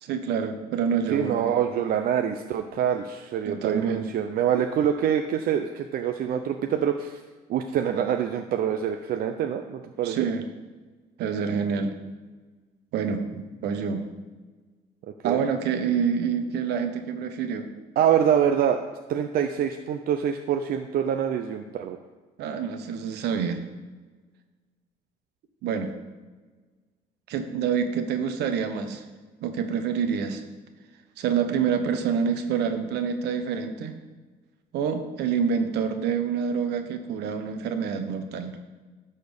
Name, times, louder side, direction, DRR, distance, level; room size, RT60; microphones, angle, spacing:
voice 1, 0.0-1.5 3.4-4.1 10.0-10.4 11.2-11.9 12.9-14.0 15.2-17.7 22.4-23.6 25.6-25.9 27.3-29.0 29.4-30.4 31.2-33.9 34.7-38.6, right 6 dB, 80° right, 7 dB, 1.1 m, -27 dB
voice 2, 1.1-7.2 7.5-10.3 15.2-15.4 18.0-18.8 19.1-22.0, right 9 dB, 60° right, 6 dB, 0.6 m, -25 dB
11.5 x 4.3 x 7.0 m, 1.3 s
cardioid pair, 110°, 17 cm